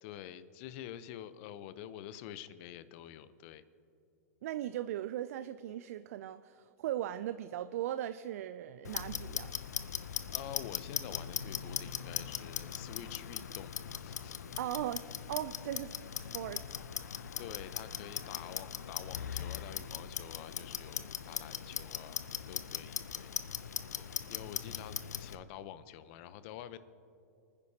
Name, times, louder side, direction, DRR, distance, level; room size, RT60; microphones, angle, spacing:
voice 1, 0.0-3.6 10.3-14.4 17.4-23.3 24.3-26.8, left 11 dB, 50° left, 14 dB, 0.7 m, -47 dB
voice 2, 4.4-9.5 14.6-15.9 16.2-16.6, right 12 dB, 65° right, 13 dB, 0.4 m, -38 dB
Clock, 8.8-25.3, left 8 dB, 85° left, 0.5 m, -40 dB
30.0 x 10.0 x 2.8 m, 2.7 s
hypercardioid pair, 115°, 9 cm